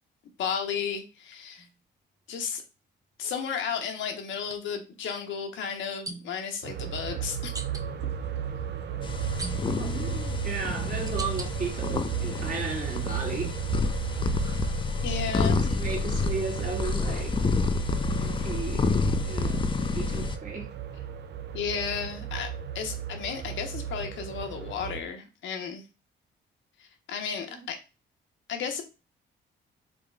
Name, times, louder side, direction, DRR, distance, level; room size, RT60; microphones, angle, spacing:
voice 1, 0.4-1.7 2.3-2.6 3.2-7.5 15.0-15.6 21.5-22.5 22.7-25.8 26.8-27.8 28.5-28.8, left 7 dB, 75° left, 4 dB, 0.9 m, -33 dB
sound 1, 1.6-1.8 4.4-4.6 6.1-6.5 7.5-7.9 9.4-9.9 10.6-11.5 12.0-12.7 13.2-15.2, right 2 dB, 20° right, 0.6 m, -42 dB
sound 2, 6.6-25.0, right 9 dB, 60° right, 0.5 m, -34 dB
sound 3, 9.0-20.4, left 5 dB, 25° left, 0.4 m, -29 dB
voice 2, 9.8-13.5 15.2-17.3 18.2-18.9 19.2-20.7 27.5-27.7, right 3 dB, 40° right, 0 dB, 1.7 m, -35 dB
3.5 x 3.5 x 3.3 m, 0.29 s
cardioid pair, 90°, 20 cm